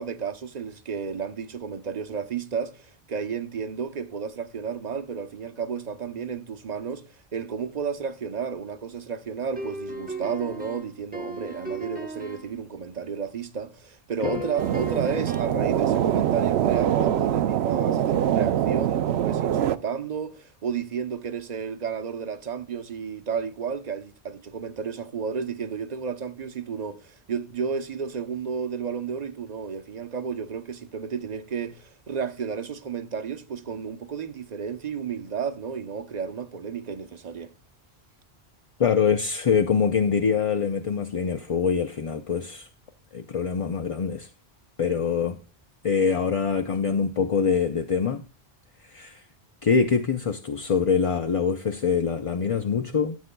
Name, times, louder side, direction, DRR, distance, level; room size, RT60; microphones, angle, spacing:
voice 1, 0.0-37.5, right 6 dB, 45° right, 0.8 m, -32 dB
sound 1, 9.6-12.6 14.2-15.7, right 2 dB, 10° right, 0.9 m, -37 dB
sound 2, 14.6-19.8, right 10 dB, 90° right, 0.8 m, -23 dB
voice 2, 38.8-42.7 43.1-44.3 44.8-45.4 45.8-48.2 48.8-49.2 49.6-53.2, left 6 dB, 40° left, 0.5 m, -24 dB
14.0 x 7.9 x 2.2 m
omnidirectional pair, 1.0 m